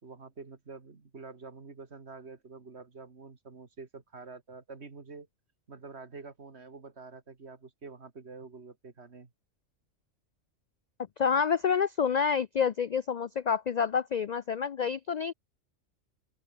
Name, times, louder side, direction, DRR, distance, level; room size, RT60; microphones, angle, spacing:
voice 1, 0.0-5.3 5.7-9.3, right 4 dB, 55° right, 2.4 m, -47 dB
voice 2, 11.2-15.3, left 6 dB, 60° left, 0.4 m, -28 dB
open air
omnidirectional pair, 1.3 m